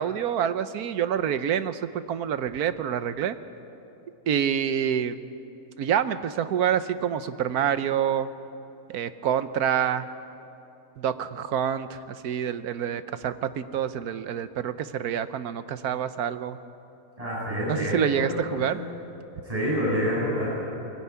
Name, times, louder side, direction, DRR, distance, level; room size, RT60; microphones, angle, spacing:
voice 1, 0.0-3.4 4.3-5.2 5.8-8.3 8.9-10.1 11.0-16.6 17.7-18.8, right 9 dB, 75° right, 12 dB, 1.3 m, -27 dB
voice 2, 17.2-18.2 18.5-18.7 19.4-20.5, equal, 20° right, -7 dB, 7.7 m, -27 dB
22.5 x 17.0 x 9.5 m, 2.9 s
omnidirectional pair, 1.6 m